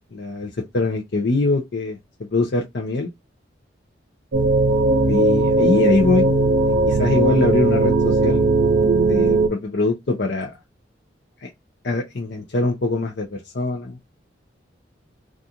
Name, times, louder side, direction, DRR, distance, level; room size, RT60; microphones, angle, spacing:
voice 1, 0.1-2.0 2.3-3.1 5.1-6.3 6.6-8.5 9.1-10.5 11.4-11.5 11.8-14.0, left 3 dB, 60° left, 0.5 m, -22 dB
sound 1, 4.3-9.5, right 3 dB, 70° right, 0.5 m, -18 dB
2.4 x 2.4 x 2.7 m
head